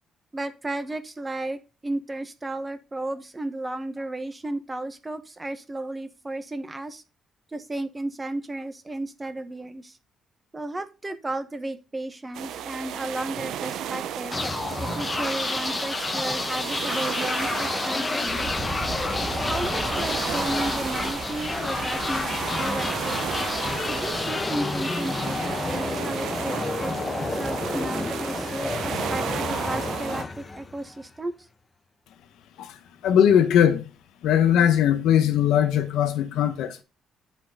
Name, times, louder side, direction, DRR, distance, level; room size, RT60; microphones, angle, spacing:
voice 1, 0.3-7.0 7.5-10.0 10.5-14.4 14.8-18.5 19.1-23.2 23.9-31.3, right 2 dB, 20° right, 1.2 m, -34 dB
sound 1, 12.3-30.2, right 9 dB, 80° right, 0.7 m, -34 dB
sound 2, 14.3-31.0, left 3 dB, 25° left, 1.0 m, -29 dB
sound 3, 18.3-24.5, right 5 dB, 50° right, 1.2 m, -40 dB
voice 2, 32.6-33.9 34.2-36.8, left 9 dB, 85° left, 1.0 m, -20 dB
8.5 x 4.5 x 5.5 m
cardioid pair, 90°, 0 cm